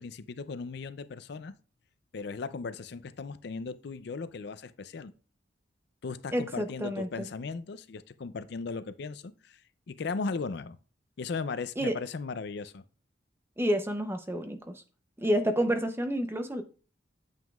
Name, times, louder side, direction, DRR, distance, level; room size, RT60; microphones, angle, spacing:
voice 1, 0.0-1.5 2.1-5.1 6.0-9.6 9.9-10.8 11.2-12.8, left 4 dB, 60° left, 0.4 m, -37 dB
voice 2, 6.3-7.3 11.8-12.0 13.6-14.8 15.2-16.6, equal, 10° right, 0.6 m, -29 dB
9.0 x 7.2 x 2.4 m
head